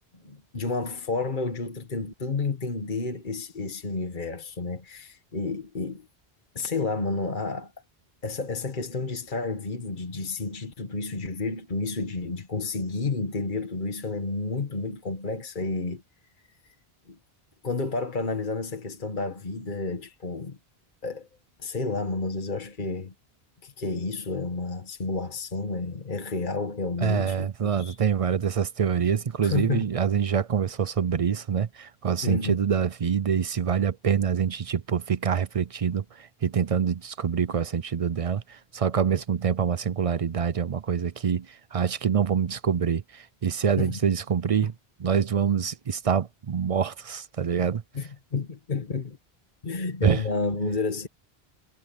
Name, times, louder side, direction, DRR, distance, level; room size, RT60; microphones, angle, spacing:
voice 1, 0.2-6.1 6.5-7.7 8.2-16.0 17.1-17.2 17.6-20.6 21.0-21.3 21.6-23.1 23.6-28.0 29.4-29.9 32.2-32.6 43.8-44.0 47.9-49.2 49.6-51.1, left 3 dB, 50° left, 1.7 m, -30 dB
voice 2, 27.0-44.7 45.0-47.8 50.0-50.2, right 7 dB, 45° right, 0.5 m, -26 dB
omnidirectional pair, 1.0 m